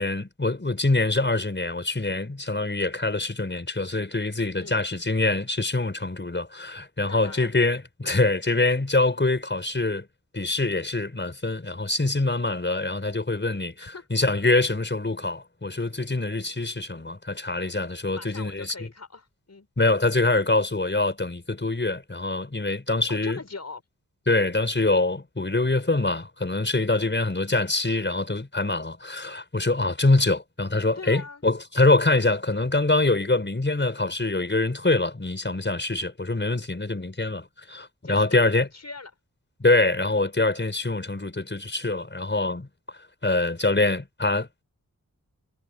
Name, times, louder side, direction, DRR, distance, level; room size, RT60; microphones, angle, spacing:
voice 1, 0.0-10.1 10.3-18.7 19.8-23.4 24.3-38.7 39.6-42.7 43.2-44.6, left 2 dB, 35° left, 5.8 m, -24 dB
voice 2, 7.0-7.6 13.8-14.1 18.1-19.7 23.1-23.8 30.9-31.4 38.0-39.1, left 4 dB, 55° left, 6.3 m, -40 dB
cardioid pair, 55°, 32 cm